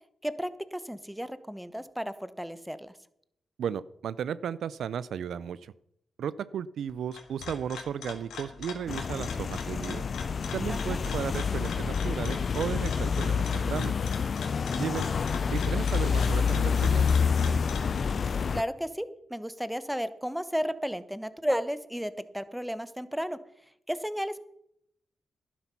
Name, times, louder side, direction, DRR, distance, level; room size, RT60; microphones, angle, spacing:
voice 1, 0.2-2.9 10.7-11.0 18.5-23.4 23.9-24.4, equal, 5° right, 14 dB, 1.1 m, -33 dB
voice 2, 3.6-5.7 6.2-10.1 10.5-13.9 14.8-15.0 15.5-17.0, right 8 dB, 75° right, 18 dB, 0.4 m, -34 dB
sound 1, 6.9-18.0, left 6 dB, 80° left, 1.9 m, -43 dB
sound 2, 8.9-18.6, left 6 dB, 60° left, 0.5 m, -28 dB
11.5 x 10.0 x 5.7 m, 0.76 s
supercardioid pair, 50°, 0 cm